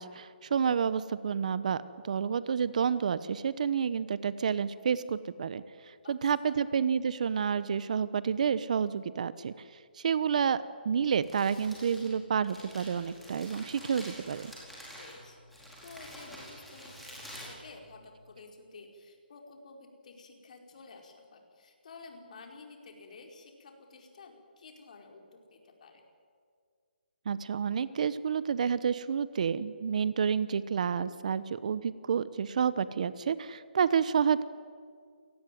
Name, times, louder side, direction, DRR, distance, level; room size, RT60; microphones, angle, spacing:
voice 1, 0.0-9.5 9.9-14.5 27.3-34.4, right 7 dB, 45° right, 16 dB, 0.9 m, -29 dB
Crumpling crinkling, 11.0-18.3, equal, ahead, 4.5 m, -48 dB
voice 2, 15.0-26.0, left 3 dB, 45° left, 3 dB, 4.8 m, -52 dB
27.5 x 19.0 x 9.3 m, 2.1 s
hypercardioid pair, 165°, 6 cm